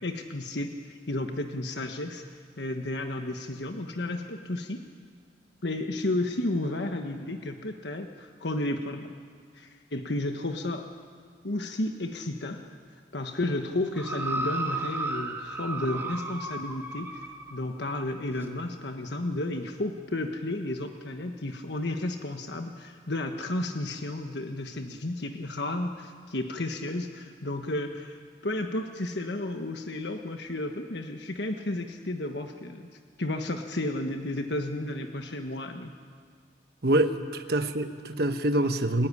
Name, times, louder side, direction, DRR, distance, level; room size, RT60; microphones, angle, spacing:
voice 1, 0.0-2.2 2.6-4.8 5.6-9.1 9.5-10.9 11.4-12.6 13.1-28.2 28.4-32.9 33.2-35.9, left 1 dB, 70° left, 5 dB, 1.4 m, -32 dB
sound 1, 14.0-17.6 18.4-18.5, right 2 dB, 15° right, 1.8 m, -34 dB
voice 2, 36.8-39.1, right 1 dB, 60° right, 7 dB, 1.3 m, -25 dB
28.0 x 16.0 x 9.8 m, 2.1 s
head